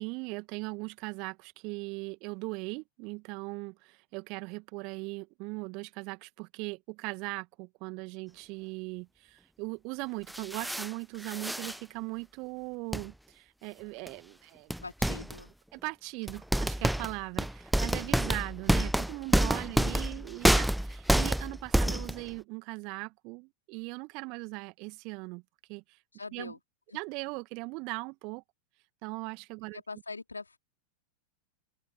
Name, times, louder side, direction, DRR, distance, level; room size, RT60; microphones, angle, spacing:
voice 1, 0.0-14.8 15.7-25.4 25.7-26.0 26.3-26.6 26.9-28.4 29.0-29.8, right 28 dB, 45° right, 1.9 m, -39 dB
sound 1, 10.3-10.9 11.2-11.8 12.9-13.1 14.1-14.2 14.7-15.4 16.3-22.3, right 1 dB, ahead, 0.3 m, -28 dB
voice 2, 14.8-15.5 19.6-19.8 26.1-26.6 26.9-27.0 29.7-30.6, left 3 dB, 80° left, 3.0 m, -43 dB
open air
figure-of-eight pair, 90°, 0 cm